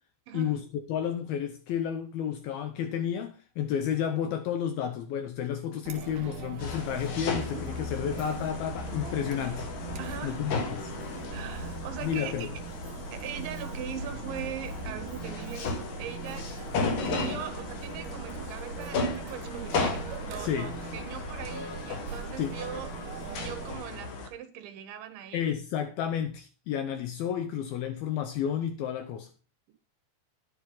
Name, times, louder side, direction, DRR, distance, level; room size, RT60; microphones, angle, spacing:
voice 1, 0.3-0.6 10.0-10.4 11.3-12.5 13.1-16.5 17.2-22.9 23.2-25.5, right 10 dB, 85° right, 3.7 m, -41 dB
voice 2, 0.9-9.7 10.2-10.9 12.0-12.5 20.4-20.7 22.4-22.5 25.3-29.3, left 9 dB, 75° left, 2.3 m, -31 dB
Chatter, 5.9-23.8, right 7 dB, 70° right, 2.7 m, -41 dB
sound 1, 6.6-24.3, left 4 dB, 60° left, 2.4 m, -35 dB
11.0 x 9.7 x 3.8 m
omnidirectional pair, 5.2 m